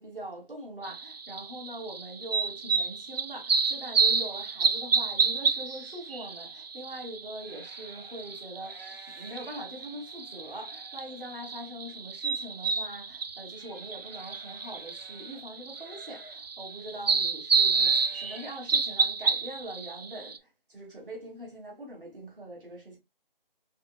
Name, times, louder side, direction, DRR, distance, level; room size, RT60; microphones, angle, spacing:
voice 1, 0.0-20.4 20.7-23.0, right 1 dB, 65° right, 2.6 m, -42 dB
sound 1, 0.8-20.4, right 5 dB, 80° right, 0.7 m, -30 dB
sound 2, 1.7-1.8 2.4-2.6 3.2-3.3 3.8-4.6 5.1-6.6 7.2-19.7, equal, 20° right, 2.0 m, -56 dB
5.5 x 3.3 x 2.3 m
figure-of-eight pair, 170°, 29 cm